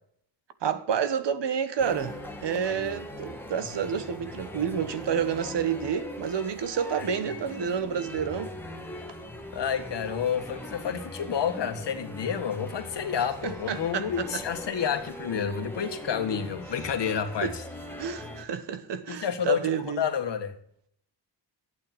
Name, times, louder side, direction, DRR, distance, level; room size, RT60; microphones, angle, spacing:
voice 1, 0.6-2.2 2.4-8.5 13.4-14.4 17.4-17.5 18.0-20.0, right 7 dB, 85° right, 1.3 m, -29 dB
sound 1, 1.8-18.4, left 1 dB, 5° left, 1.8 m, -41 dB
voice 2, 9.5-17.6 19.1-20.6, left 7 dB, 85° left, 1.7 m, -29 dB
12.0 x 8.9 x 6.0 m
wide cardioid pair, 140°, 41 cm